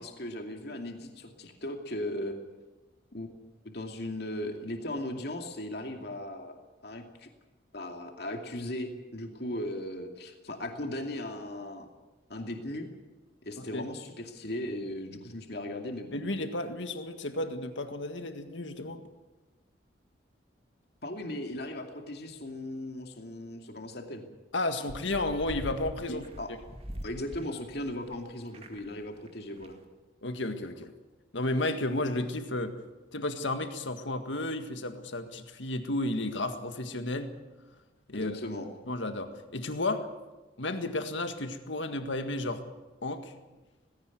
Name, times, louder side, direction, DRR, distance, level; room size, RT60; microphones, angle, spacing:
voice 1, 0.0-2.3 3.1-3.4 3.6-6.5 6.8-7.3 7.7-11.9 12.3-12.9 13.4-16.2 21.0-24.3 26.1-26.5 27.0-29.8 38.1-38.7, left 1 dB, 55° left, 4 dB, 2.5 m, -37 dB
voice 2, 13.6-13.9 16.1-19.0 24.5-26.3 30.2-30.9 31.3-32.7 33.1-37.3 38.1-38.4 38.9-40.1 40.6-42.6 43.0-43.3, left 2 dB, 75° left, 8 dB, 1.8 m, -32 dB
sound 1, 24.9-28.2 28.4-29.0 29.3-29.4 29.6-29.7, equal, 30° right, 2.2 m, -43 dB
19.0 x 16.5 x 9.4 m, 1.1 s
head